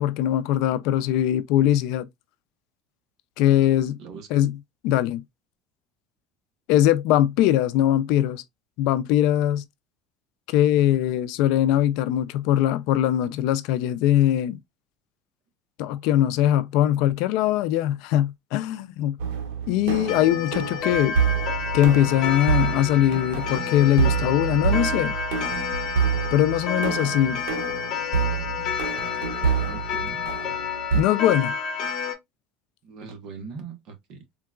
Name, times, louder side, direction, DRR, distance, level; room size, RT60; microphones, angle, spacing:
voice 1, 0.0-2.1 3.4-4.0 4.3-4.6 4.8-5.2 6.7-8.4 8.8-9.6 10.5-14.6 15.8-19.2 19.7-21.2 21.7-25.2 26.3-27.4 30.9-31.5, left 12 dB, 65° left, 0.3 m, -21 dB
voice 2, 4.0-4.5 29.4-30.2 32.8-34.2, right 5 dB, 55° right, 0.9 m, -41 dB
sound 1, 19.2-31.0, right 7 dB, 85° right, 0.7 m, -27 dB
Clock, 20.1-32.1, left 6 dB, 45° left, 0.9 m, -30 dB
3.7 x 2.3 x 2.3 m
cardioid pair, 145°, 0 cm